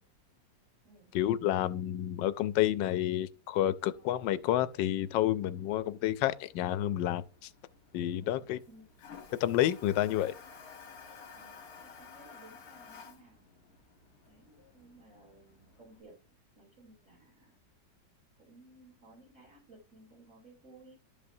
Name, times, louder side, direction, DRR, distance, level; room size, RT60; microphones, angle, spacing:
voice 1, 1.1-7.5 7.9-8.6 9.4-10.3, left 12 dB, 80° left, 1.2 m, -29 dB
Toilet flush, 3.8-16.0, left 5 dB, 55° left, 1.8 m, -54 dB
voice 2, 8.2-8.9 10.1-10.4 11.4-13.5 14.2-16.2 16.5-17.5 18.4-21.0, right 2 dB, 45° right, 3.6 m, -58 dB
12.0 x 5.3 x 2.7 m
omnidirectional pair, 2.0 m